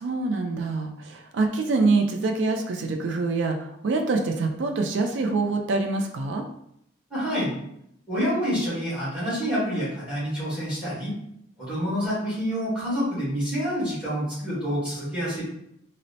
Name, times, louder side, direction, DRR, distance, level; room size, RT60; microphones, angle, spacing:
voice 1, 0.0-6.4, right 3 dB, 70° right, 3 dB, 0.3 m, -25 dB
voice 2, 7.1-7.5 8.1-11.1 11.6-15.4, equal, 5° right, -9 dB, 1.5 m, -27 dB
4.2 x 2.0 x 2.6 m, 0.74 s
head